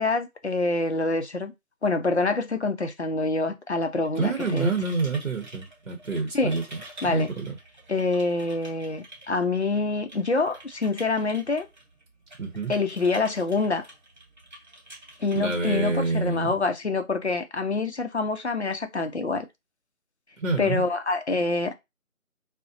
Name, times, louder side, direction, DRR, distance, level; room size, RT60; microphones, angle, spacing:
voice 1, 0.0-1.5 1.8-4.7 6.3-6.6 7.0-7.3 7.9-11.7 12.7-13.8 15.2-19.5 20.6-21.7, left 3 dB, 50° left, 0.5 m, -26 dB
sound 1, 3.9-16.6, right 1 dB, 35° right, 1.1 m, -48 dB
voice 2, 4.2-6.8 7.1-7.6 12.4-12.8 15.4-16.6 20.4-20.8, right 3 dB, 60° right, 0.8 m, -27 dB
3.6 x 2.1 x 2.6 m
figure-of-eight pair, 175°, 43 cm